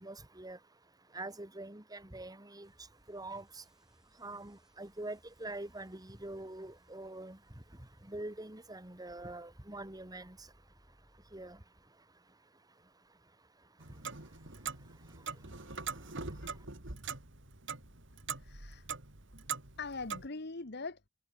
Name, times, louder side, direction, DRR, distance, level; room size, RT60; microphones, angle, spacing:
voice 1, 0.0-16.7, right 2 dB, 20° right, 2.4 m, -47 dB
sound 1, 2.6-11.6, equal, 5° right, 6.5 m, -68 dB
Clock, 13.8-20.3, right 5 dB, 65° right, 3.3 m, -43 dB
voice 2, 18.4-18.9 19.8-21.1, left 3 dB, 55° left, 1.5 m, -42 dB
head